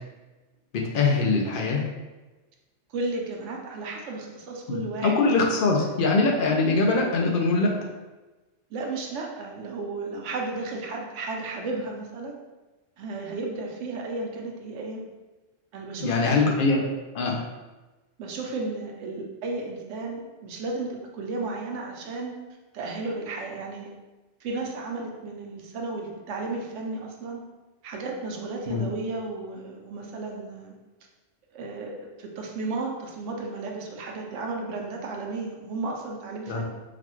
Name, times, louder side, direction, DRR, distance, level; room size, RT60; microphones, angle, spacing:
voice 1, 0.7-1.8 4.7-7.7 16.0-16.8 17.1-17.4 28.7-28.9 36.5-36.6, left 3 dB, 60° left, 0 dB, 0.6 m, -23 dB
voice 2, 2.9-5.1 5.6-6.0 8.7-12.3 13.0-15.0 15.7-16.5 18.2-22.3 22.7-23.9 24.4-27.4 27.8-30.7 31.5-36.6, right 3 dB, 75° right, 0 dB, 0.9 m, -34 dB
3.9 x 2.2 x 3.0 m, 1.2 s
omnidirectional pair, 1.3 m